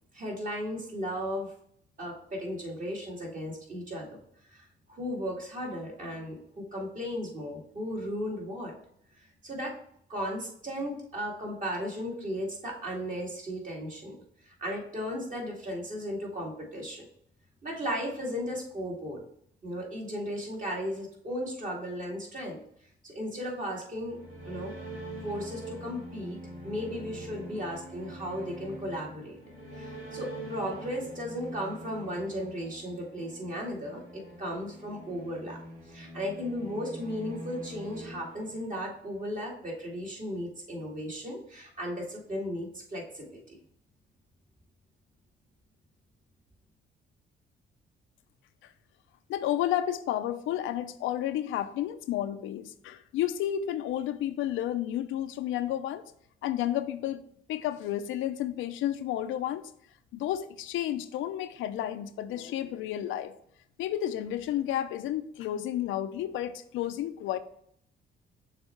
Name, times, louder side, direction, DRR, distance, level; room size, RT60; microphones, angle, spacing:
voice 1, 0.1-1.5 2.0-4.2 4.5-8.7 9.2-9.8 10.1-14.2 14.4-17.1 17.6-19.2 19.6-22.6 23.0-24.2 24.5-24.7 25.2-26.4 26.6-29.4 29.7-35.6 35.9-43.6, equal, 40° right, -2 dB, 2.4 m, -35 dB
sound 1, 23.9-39.1, right 1 dB, 80° right, 2.1 m, -44 dB
voice 2, 49.3-56.0 56.4-57.2 57.5-59.7 60.1-63.3 63.8-67.4, left 12 dB, 85° left, 10 dB, 0.5 m, -31 dB
6.7 x 3.5 x 4.4 m, 0.67 s
cardioid pair, 90°, 20 cm